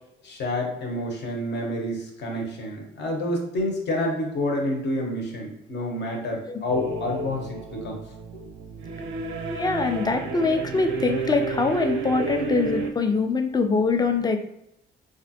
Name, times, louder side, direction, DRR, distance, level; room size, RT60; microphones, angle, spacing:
voice 1, 0.2-8.0 8.3-8.4, left 1 dB, 60° left, 0 dB, 0.9 m, -28 dB
sound 1, 6.7-12.9, right 4 dB, 90° right, 0.5 m, -31 dB
voice 2, 9.5-14.4, left 4 dB, 20° left, 6 dB, 0.4 m, -23 dB
3.3 x 2.5 x 2.7 m, 0.83 s
cardioid pair, 90°, 20 cm